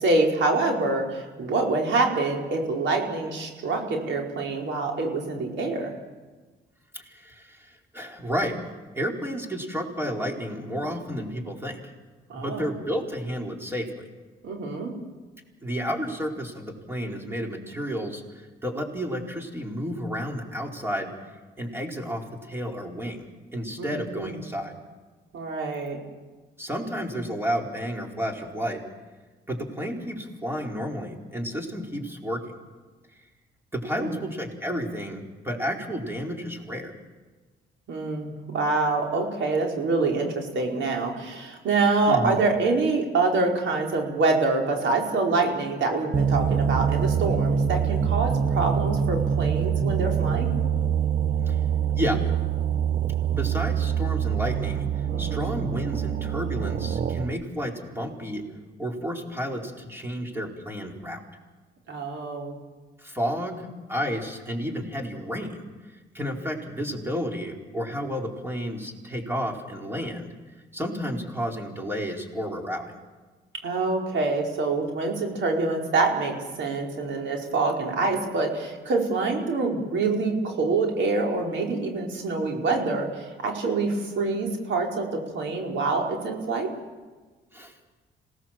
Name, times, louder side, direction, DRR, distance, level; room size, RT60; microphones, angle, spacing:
voice 1, 0.0-5.9 12.3-12.6 14.4-14.9 23.8-24.4 25.3-26.0 33.9-34.2 37.9-50.5 55.1-55.5 61.9-62.6 73.6-86.7, right 3 dB, 70° right, 1 dB, 4.7 m, -26 dB
voice 2, 6.9-8.6 8.9-11.9 12.3-14.1 15.6-21.1 21.6-24.7 26.6-28.8 29.5-32.5 33.7-36.9 42.1-42.4 51.4-51.6 51.9-52.2 53.3-58.4 58.8-61.2 63.0-65.6 65.9-70.3 70.7-72.9 87.5-87.8, equal, 10° right, 1 dB, 4.6 m, -31 dB
sound 1, 46.1-57.4, right 8 dB, 40° right, 0.8 m, -25 dB
27.0 x 18.0 x 7.6 m, 1.3 s
cardioid pair, 90°, 20 cm